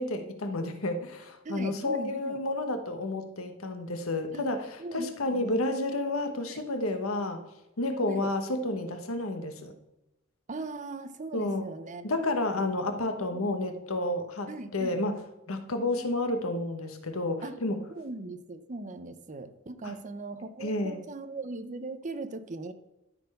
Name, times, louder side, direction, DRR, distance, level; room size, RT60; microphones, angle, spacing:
voice 1, 0.0-7.4 7.8-9.7 11.3-11.7 12.0-15.2 15.5-17.8 19.8-19.9 20.6-21.0, left 2 dB, 75° left, 7 dB, 1.1 m, -31 dB
voice 2, 1.4-2.4 4.3-4.5 4.8-5.8 6.5-6.6 8.0-8.3 10.5-12.1 13.3-13.5 14.5-15.0 17.4-17.6 17.9-22.7, right 2 dB, 35° right, 10 dB, 0.7 m, -39 dB
13.0 x 4.4 x 5.4 m, 0.93 s
head